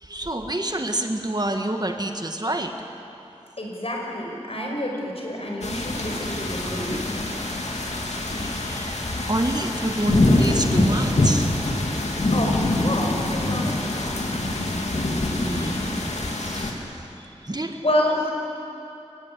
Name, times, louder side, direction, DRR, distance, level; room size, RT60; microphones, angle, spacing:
voice 1, 0.0-2.8 8.3-11.5 15.4-16.0 16.4-17.0 17.4-17.8, right 1 dB, 35° right, 5 dB, 1.7 m, -28 dB
voice 2, 3.6-7.0 12.3-14.1 17.5-17.6 17.8-18.3, left 1 dB, 60° left, 0 dB, 5.7 m, -28 dB
sound 1, 5.6-16.7, left 1 dB, 80° left, 2.8 m, -24 dB
28.0 x 16.0 x 9.7 m, 2.8 s
wide cardioid pair, 50°, 11 cm